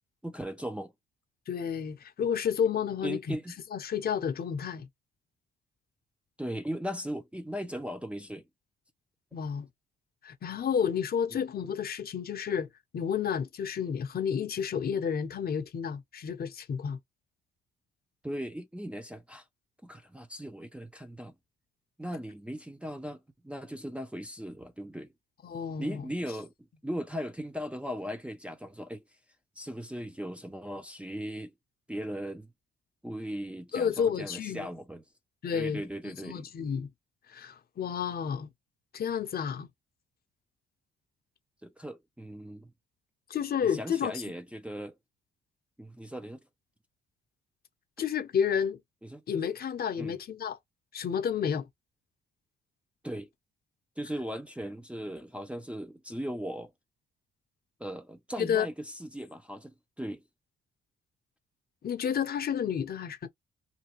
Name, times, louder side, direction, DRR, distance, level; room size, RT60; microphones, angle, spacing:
voice 1, 0.2-0.9 3.0-3.5 6.4-8.4 11.3-11.4 18.2-19.4 19.8-21.3 22.0-25.1 25.8-26.5 26.8-29.0 29.6-31.5 31.9-32.5 33.0-35.0 35.5-36.5 41.6-42.7 43.6-45.0 45.8-46.4 49.0-49.2 50.0-50.1 53.0-53.3 54.0-56.7 57.8-60.2, equal, 5° right, 0.5 m, -38 dB
voice 2, 1.5-3.3 3.7-4.9 9.3-9.7 10.2-12.7 12.9-17.0 25.4-26.1 33.7-34.7 35.4-35.8 36.2-36.9 37.3-38.5 38.9-39.7 43.3-44.2 48.0-48.8 49.3-50.6 50.9-51.7 58.4-58.7 61.8-63.3, left 7 dB, 50° left, 0.7 m, -31 dB
2.6 x 2.3 x 3.0 m
cardioid pair, 90°, 20 cm